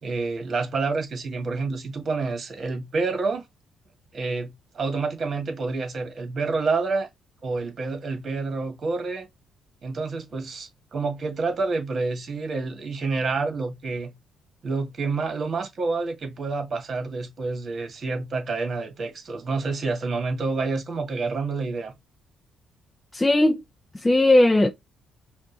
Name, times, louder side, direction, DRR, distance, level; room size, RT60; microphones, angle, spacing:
voice 1, 0.0-3.4 4.1-7.1 7.4-9.3 9.8-14.1 14.6-21.9, right 3 dB, 45° right, 1.8 m, -28 dB
voice 2, 23.1-23.6 23.9-24.7, left 1 dB, 15° left, 0.5 m, -18 dB
5.3 x 2.5 x 3.9 m
cardioid pair, 90°, 0 cm